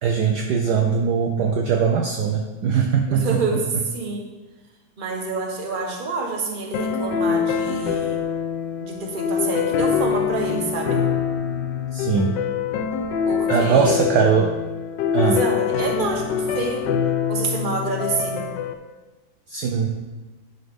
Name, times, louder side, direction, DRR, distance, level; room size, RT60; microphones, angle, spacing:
voice 1, 0.0-3.3 3.5-3.6 11.9-12.3 13.5-14.5 15.1-15.4 19.5-19.9, right 6 dB, 65° right, 2 dB, 1.1 m, -20 dB
voice 2, 3.1-4.3 5.0-8.2 8.8-11.0 13.2-13.9 15.2-16.8 17.3-18.5, right 3 dB, 30° right, 0 dB, 1.1 m, -27 dB
sound 1, 6.7-18.7, left 7 dB, 70° left, 1.2 m, -24 dB
10.5 x 4.1 x 5.2 m, 1.2 s
omnidirectional pair, 2.2 m